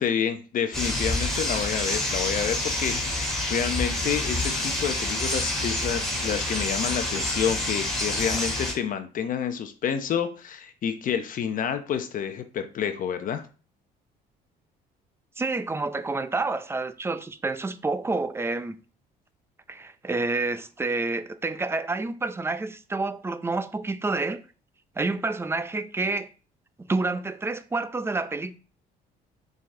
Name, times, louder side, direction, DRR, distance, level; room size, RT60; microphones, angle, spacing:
voice 1, 0.0-13.4, left 8 dB, 55° left, 0.9 m, -29 dB
sound 1, 0.7-8.7, left 1 dB, 5° left, 3.4 m, -28 dB
voice 2, 15.4-18.8 19.7-24.4 25.0-26.3 26.8-28.6, right 3 dB, 15° right, 0.6 m, -29 dB
6.7 x 4.9 x 3.8 m
cardioid pair, 110°, 17 cm